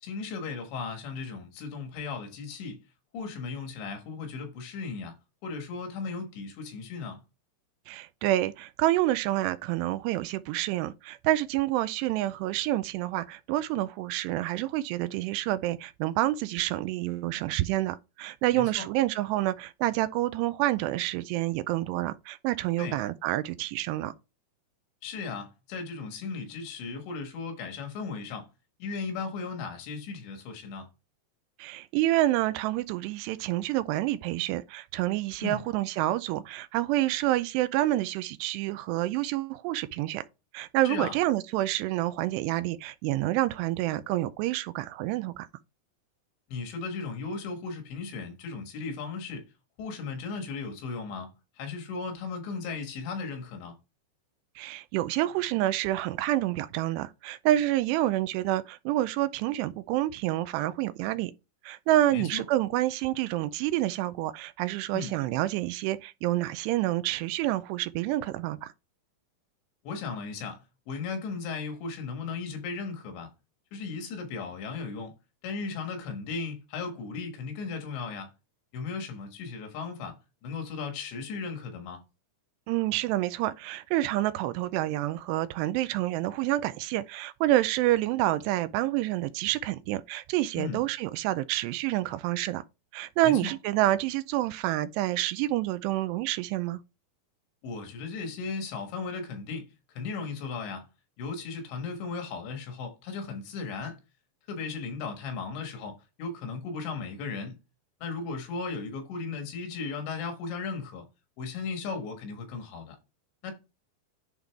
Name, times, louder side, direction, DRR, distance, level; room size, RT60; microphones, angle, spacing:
voice 1, 0.0-2.8 3.1-5.1 5.4-7.2 18.5-18.9 22.8-23.0 25.0-28.5 28.8-30.9 35.4-35.6 40.9-41.2 46.5-49.5 49.8-51.3 51.6-53.7 62.1-62.5 64.9-65.1 69.9-73.3 73.7-75.1 75.4-78.3 78.7-82.0 90.6-90.8 93.2-93.5 97.6-99.7 100.0-100.9 101.2-104.0 104.5-107.6 108.0-111.1 111.4-113.0 113.4-113.5, left 4 dB, 85° left, 3.8 m, -36 dB
voice 2, 7.9-24.1 31.6-40.2 40.5-45.5 54.6-61.3 61.6-68.7 82.7-92.6 92.9-96.8, right 15 dB, 85° right, 2.6 m, -28 dB
10.5 x 3.7 x 3.5 m
omnidirectional pair, 5.0 m